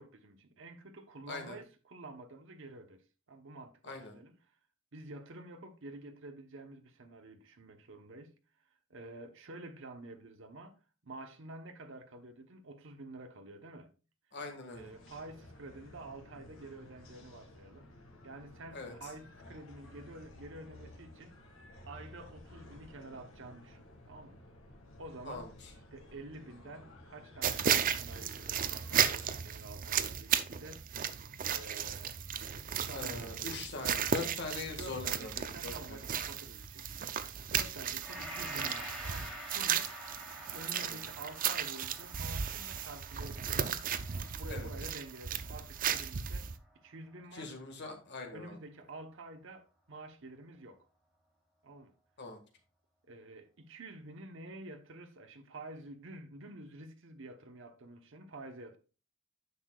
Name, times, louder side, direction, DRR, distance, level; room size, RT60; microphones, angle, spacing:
voice 1, 0.0-3.0 3.3-4.4 4.9-8.3 8.7-10.7 11.0-13.9 14.7-17.9 18.2-21.3 21.8-24.4 25.0-25.5 25.9-30.8 31.5-33.3 33.7-34.0 34.8-39.9 40.5-43.7 44.1-46.5 46.8-47.5 48.3-50.8 51.6-51.9 53.1-58.8, right 2 dB, 65° right, 0.9 m, -49 dB
voice 2, 1.3-1.6 3.8-4.1 14.3-14.9 18.7-18.9 25.3-25.5 32.9-35.3 35.6-36.0 40.7-41.0 44.5-44.7 47.3-48.6 52.2-52.4, left 3 dB, 55° left, 1.7 m, -42 dB
sound 1, 14.7-29.1, left 1 dB, 75° left, 1.8 m, -54 dB
sound 2, 27.4-46.6, right 8 dB, 40° right, 0.5 m, -35 dB
Gong, 38.0-46.4 46.8-46.9, equal, ahead, 2.9 m, -48 dB
9.6 x 6.5 x 2.3 m
head